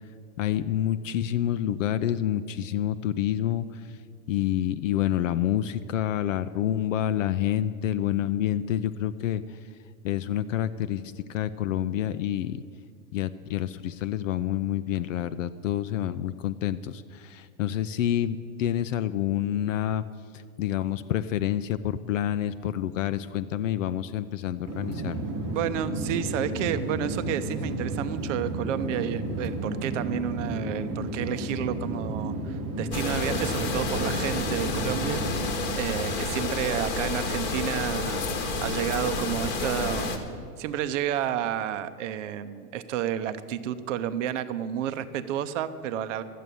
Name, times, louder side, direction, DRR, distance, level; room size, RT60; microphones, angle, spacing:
voice 1, 0.4-3.8 4.3-9.4 10.0-11.0 11.3-12.6 13.1-20.0 20.6-25.2, left 11 dB, 55° left, 12 dB, 0.5 m, -28 dB
sound 1, 24.6-35.5, right 2 dB, 15° right, 0.4 m, -32 dB
voice 2, 25.5-35.2 35.7-38.2 38.6-40.1 40.6-46.2, right 10 dB, 50° right, 11 dB, 0.7 m, -31 dB
sound 2, 32.9-40.2, left 3 dB, 25° left, 1.2 m, -29 dB
12.5 x 8.5 x 9.2 m, 2.1 s
supercardioid pair, 160°, 47 cm